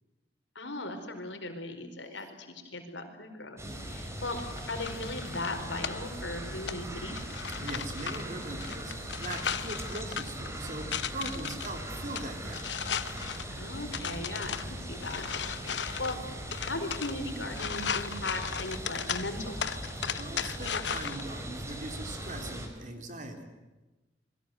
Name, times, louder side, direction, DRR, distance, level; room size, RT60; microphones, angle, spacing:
voice 1, 0.5-4.4 4.7-7.2 13.5-15.2 15.6-16.2 16.6-19.7, left 2 dB, 85° left, 6 dB, 4.7 m, -38 dB
sound 1, 3.6-22.7, right 1 dB, 15° right, 4.1 m, -40 dB
sound 2, 4.2-21.2, left 7 dB, 70° left, 1.0 m, -37 dB
voice 2, 7.6-12.7 20.2-23.4, right 2 dB, 45° right, 5 dB, 4.1 m, -41 dB
27.5 x 22.0 x 8.0 m, 1.1 s
head